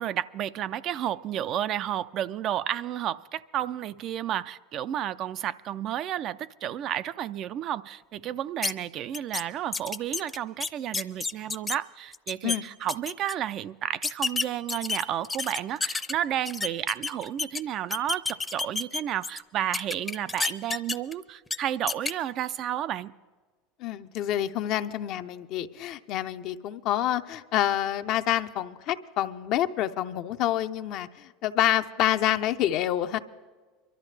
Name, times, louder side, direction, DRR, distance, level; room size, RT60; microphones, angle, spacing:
voice 1, 0.0-23.1, right 11 dB, 50° right, 14 dB, 0.4 m, -31 dB
sound 1, 8.6-8.7 9.1-9.4 9.7-11.8 12.1-12.6 12.9-13.3 14.0-16.1 16.5-17.6 17.9-19.4 19.7-21.1 21.5-21.6 21.9-22.1, left 3 dB, 15° left, 0.6 m, -29 dB
voice 2, 23.8-33.2, left 12 dB, 60° left, 9 dB, 0.6 m, -27 dB
24.0 x 12.5 x 3.3 m, 1.4 s
hypercardioid pair, 95°, 0 cm